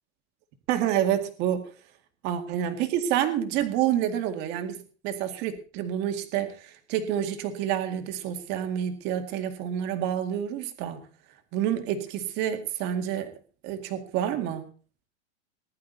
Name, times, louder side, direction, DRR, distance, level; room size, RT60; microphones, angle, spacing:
voice 1, 0.7-1.7 2.2-11.0 11.5-13.3 13.6-14.7, right 10 dB, 30° right, 7 dB, 2.1 m, -28 dB
19.5 x 11.5 x 4.0 m, 0.39 s
supercardioid pair, 175°, 34 cm